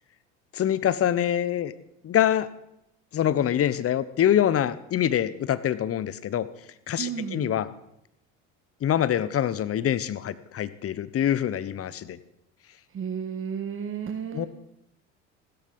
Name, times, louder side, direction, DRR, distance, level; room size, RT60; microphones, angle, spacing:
voice 1, 0.5-1.7 2.0-2.5 3.1-6.5 6.9-7.7 8.8-12.2 14.3-14.5, left 10 dB, 40° left, 16 dB, 1.1 m, -25 dB
voice 2, 7.0-7.6 12.9-14.5, right 7 dB, 35° right, 6 dB, 1.6 m, -33 dB
15.5 x 13.0 x 5.5 m, 0.81 s
hypercardioid pair, 80°, 36 cm